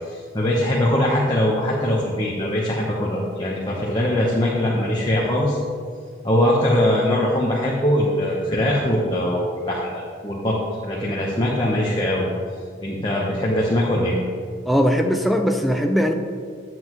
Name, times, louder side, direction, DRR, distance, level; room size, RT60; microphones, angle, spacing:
voice 1, 0.1-5.6 6.2-10.6 10.8-12.3 12.8-14.2, left 1 dB, 25° left, -4 dB, 0.9 m, -21 dB
voice 2, 14.7-16.1, equal, ahead, 4 dB, 0.4 m, -19 dB
9.8 x 7.7 x 3.0 m, 2.1 s
head